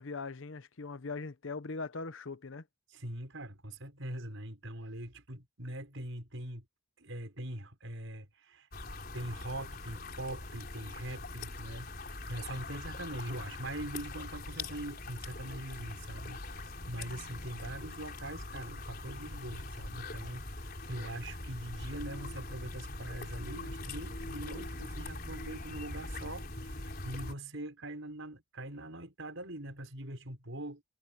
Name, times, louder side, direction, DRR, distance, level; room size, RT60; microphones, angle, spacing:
voice 1, 0.0-2.7, left 3 dB, 70° left, 0.9 m, -40 dB
voice 2, 2.9-6.7 7.0-8.7 9.1-30.8, right 1 dB, 70° right, 5.7 m, -42 dB
sound 1, 8.7-27.3, left 2 dB, 45° left, 4.6 m, -42 dB
head